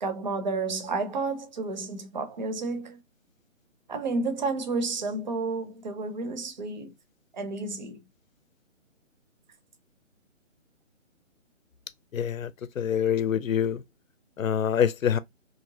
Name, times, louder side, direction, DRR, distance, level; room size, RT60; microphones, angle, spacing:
voice 1, 0.0-3.0 3.9-6.9 7.3-8.0, right 3 dB, 35° right, 0.5 m, -31 dB
voice 2, 12.1-12.5 12.8-13.8 14.4-15.2, left 8 dB, 80° left, 0.6 m, -25 dB
3.2 x 2.8 x 2.7 m
figure-of-eight pair, 150°, 39 cm